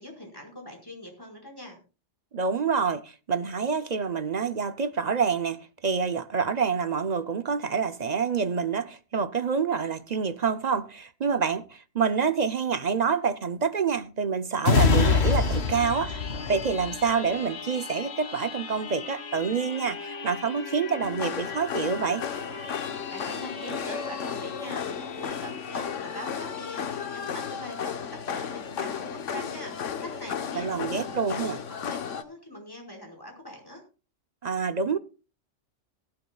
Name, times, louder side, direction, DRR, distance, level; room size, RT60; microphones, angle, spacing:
voice 1, 0.0-1.8 23.1-26.8 27.1-28.0 28.3-33.8, left 1 dB, 20° left, 4.9 m, -42 dB
voice 2, 2.3-16.1 16.5-22.2 30.6-31.6 34.4-35.0, right 6 dB, 45° right, 0.6 m, -27 dB
sound 1, 14.6-27.9 28.4-28.5, left 5 dB, 60° left, 1.6 m, -30 dB
sound 2, 21.0-32.2, left 7 dB, 90° left, 1.3 m, -34 dB
20.0 x 11.5 x 2.3 m
omnidirectional pair, 1.2 m